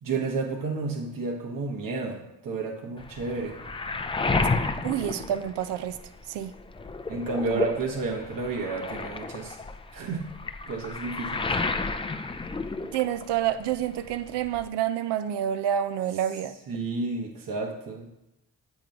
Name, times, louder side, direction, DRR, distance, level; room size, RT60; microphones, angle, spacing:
voice 1, 0.0-3.6 7.1-9.6 9.9-10.3 10.7-11.5 16.7-18.1, right 3 dB, 55° right, 1.0 m, -31 dB
Waves surf, 3.0-6.2 6.5-13.5 13.7-14.7, left 3 dB, 15° left, 0.4 m, -31 dB
voice 2, 4.8-6.0 6.3-6.6 7.5-7.6 12.9-16.5, right 10 dB, 80° right, 0.5 m, -28 dB
7.9 x 3.0 x 5.1 m
supercardioid pair, 55°, 40 cm